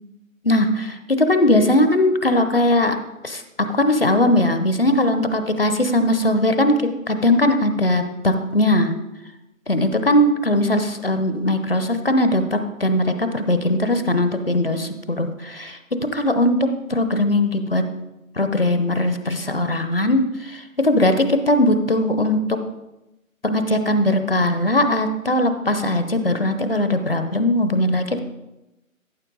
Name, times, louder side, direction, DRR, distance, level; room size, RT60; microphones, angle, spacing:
voice 1, 0.4-3.0 3.2-3.4 3.7-8.9 9.7-17.8 18.4-22.4 23.4-28.2, left 1 dB, 45° left, 8 dB, 0.8 m, -19 dB
14.0 x 7.6 x 3.9 m, 0.95 s
figure-of-eight pair, 155°, 42 cm